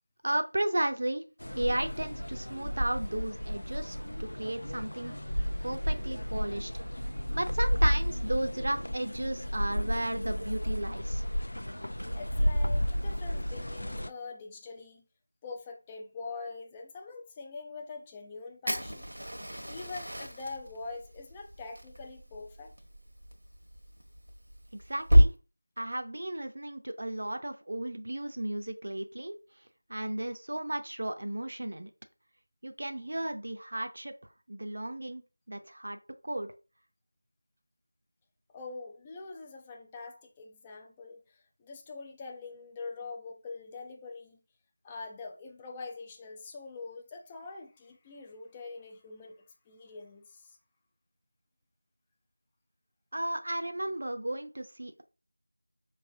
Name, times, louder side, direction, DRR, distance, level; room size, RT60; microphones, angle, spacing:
voice 1, 0.2-1.2 1.5-5.1 5.6-6.7 7.3-11.2 24.7-25.3 25.8-29.4 29.9-31.9 32.6-34.1 34.5-36.0 36.2-36.5 53.1-55.0, right 1 dB, 50° right, 0.6 m, -34 dB
sound 1, 1.4-14.1, equal, 90° left, 0.4 m, -32 dB
voice 2, 12.1-15.0 15.4-19.1 19.7-22.7 38.5-44.4 44.8-50.6, left 3 dB, 10° left, 0.3 m, -44 dB
Fire, 18.7-25.3, equal, 85° right, 1.2 m, -29 dB
5.2 x 3.2 x 2.6 m
figure-of-eight pair, 175°, 0 cm